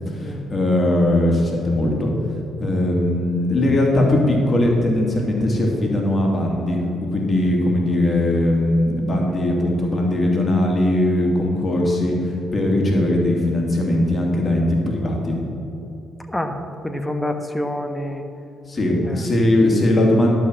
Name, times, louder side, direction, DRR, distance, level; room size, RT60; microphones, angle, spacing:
voice 1, 0.1-2.1 2.6-15.4 18.7-20.3, left 1 dB, 40° left, -1 dB, 2.6 m, -19 dB
voice 2, 16.8-18.2 19.0-19.3, left 1 dB, 10° left, 6 dB, 1.2 m, -27 dB
11.0 x 5.7 x 6.4 m, 2.9 s
hypercardioid pair, 50°, 0 cm